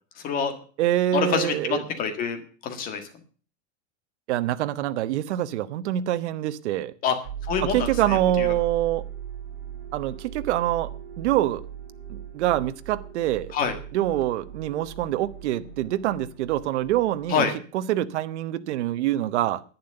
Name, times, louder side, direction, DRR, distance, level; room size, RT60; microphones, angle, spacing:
voice 1, 0.2-0.5 1.1-3.1 7.0-7.2 7.4-8.5 13.5-13.7 17.3-17.5, left 6 dB, 25° left, 1.7 m, -26 dB
voice 2, 0.8-1.8 4.3-6.9 7.6-9.0 9.9-11.6 12.1-13.5 13.9-17.4 17.7-19.6, right 13 dB, 65° right, 1.0 m, -25 dB
sound 1, 7.2-17.3, right 9 dB, 50° right, 6.7 m, -38 dB
11.0 x 9.7 x 6.6 m
supercardioid pair, 180°, 36 cm